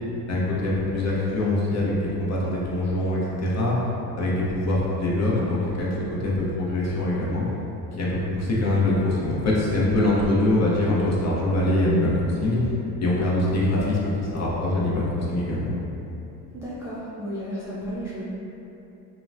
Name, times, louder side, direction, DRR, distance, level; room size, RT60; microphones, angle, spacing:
voice 1, 0.3-3.8 4.2-7.4 8.0-12.1 12.4-12.6 13.0-15.7, left 1 dB, 35° left, -5 dB, 0.7 m, -23 dB
voice 2, 16.5-18.2, equal, 5° right, -11 dB, 0.3 m, -33 dB
2.9 x 2.2 x 2.5 m, 2.9 s
hypercardioid pair, 70°, 50 cm